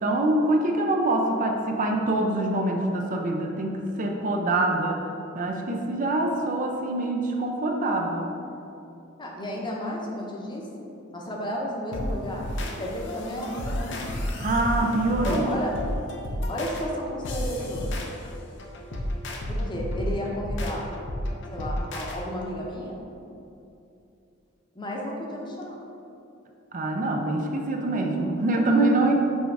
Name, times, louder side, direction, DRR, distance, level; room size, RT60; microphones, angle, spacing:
voice 1, 0.0-5.0 5.3-8.3 14.4-15.4 26.7-29.1, right 2 dB, 40° right, 2 dB, 0.5 m, -25 dB
voice 2, 9.2-10.7 11.1-12.5 12.8-14.1 15.2-15.8 16.5-18.0 19.5-20.9 21.5-23.0 24.8-25.8, equal, 20° left, -2 dB, 0.8 m, -32 dB
sound 1, 11.9-22.2, left 1 dB, 60° left, 0.7 m, -32 dB
6.2 x 3.5 x 4.7 m, 2.7 s
head